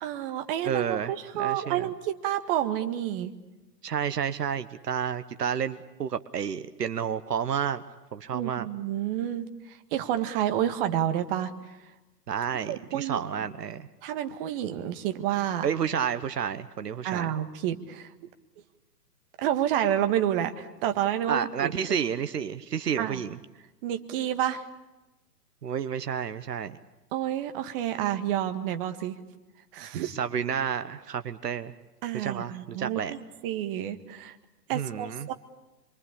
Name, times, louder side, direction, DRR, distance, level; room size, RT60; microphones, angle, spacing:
voice 1, 0.0-3.3 8.3-11.5 12.7-13.2 14.0-15.7 17.0-18.1 19.4-21.7 23.0-23.2 23.8-24.7 27.1-29.2 29.7-30.1 32.0-34.4 34.7-35.3, right 11 dB, 35° right, 7 dB, 1.8 m, -29 dB
voice 2, 0.6-1.9 3.8-7.8 8.1-8.7 12.3-13.9 15.6-17.3 21.3-23.4 25.6-26.8 30.0-31.7 32.1-33.1 34.7-35.3, right 8 dB, 70° right, 11 dB, 1.2 m, -30 dB
27.0 x 23.5 x 8.6 m, 1.1 s
hypercardioid pair, 125°, 49 cm